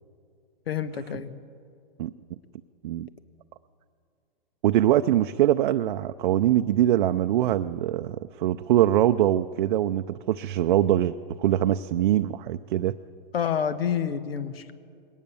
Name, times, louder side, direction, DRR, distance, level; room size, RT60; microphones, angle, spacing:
voice 1, 0.7-1.4 13.3-14.7, left 8 dB, 85° left, 13 dB, 1.3 m, -28 dB
voice 2, 4.6-12.9, right 12 dB, 60° right, 7 dB, 0.6 m, -23 dB
20.5 x 18.0 x 7.0 m, 2.4 s
hypercardioid pair, 145°, 29 cm